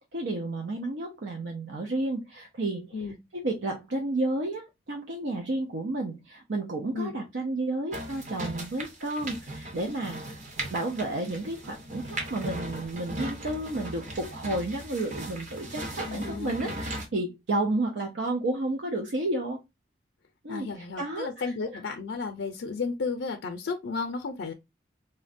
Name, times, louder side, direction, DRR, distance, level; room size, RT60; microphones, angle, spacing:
voice 1, 0.1-2.9 3.3-10.4 10.7-19.6 20.4-21.8, right 2 dB, 80° right, 0.5 m, -31 dB
sound 1, 7.9-17.1, right 1 dB, 40° right, 0.8 m, -38 dB
voice 2, 16.1-16.8 20.5-24.5, left 4 dB, 90° left, 0.5 m, -33 dB
3.8 x 2.1 x 2.5 m
head